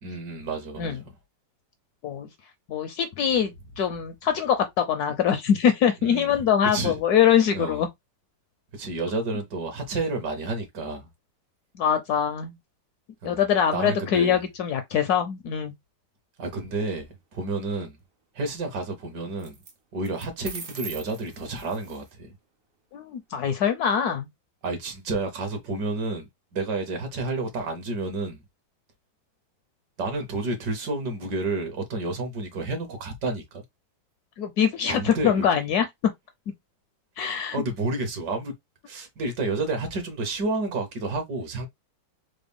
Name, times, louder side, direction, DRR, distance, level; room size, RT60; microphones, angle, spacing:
voice 1, 0.0-1.1 6.0-6.4 6.7-7.0 7.5-7.8 8.7-11.1 13.2-13.4 13.7-14.5 16.4-18.0 18.3-19.5 19.9-22.3 24.6-28.4 30.0-33.6 34.8-35.5 37.5-38.5 38.9-41.7, right 2 dB, 65° right, 1.5 m, -30 dB
voice 2, 2.7-7.9 11.8-12.6 13.2-15.7 22.9-24.3 34.4-35.8 37.2-37.6, left 8 dB, 70° left, 1.0 m, -23 dB
sound 1, 16.6-17.1 19.4-19.7 20.0-22.1, right 4 dB, 85° right, 0.5 m, -41 dB
4.0 x 2.0 x 3.4 m
omnidirectional pair, 2.0 m